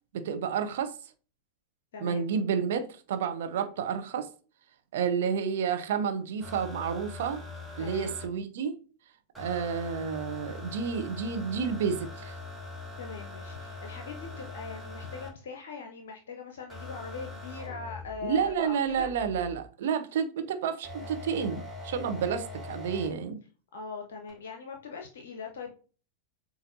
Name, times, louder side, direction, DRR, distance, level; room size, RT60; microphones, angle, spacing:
voice 1, 0.1-0.9 2.0-4.3 4.9-7.4 7.8-8.8 9.4-12.3 18.2-23.4, right 7 dB, 55° right, 0.7 m, -30 dB
voice 2, 1.9-2.3 7.8-8.2 13.0-19.1 23.7-25.7, left 5 dB, 60° left, 0.6 m, -41 dB
sound 1, 6.4-8.3 9.3-15.3 16.7-19.7 20.8-23.1 24.3-24.4, left 3 dB, 10° right, 1.2 m, -42 dB
7.5 x 2.6 x 2.7 m
figure-of-eight pair, 90°, 0 cm